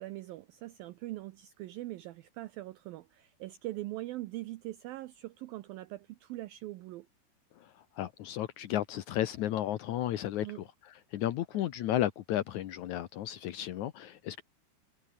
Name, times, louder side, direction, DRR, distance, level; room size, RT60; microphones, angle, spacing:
voice 1, 0.0-7.1 10.4-10.6, right 17 dB, 80° right, 2.1 m, -42 dB
voice 2, 7.6-14.4, left 12 dB, 90° left, 1.6 m, -34 dB
omnidirectional pair, 5.0 m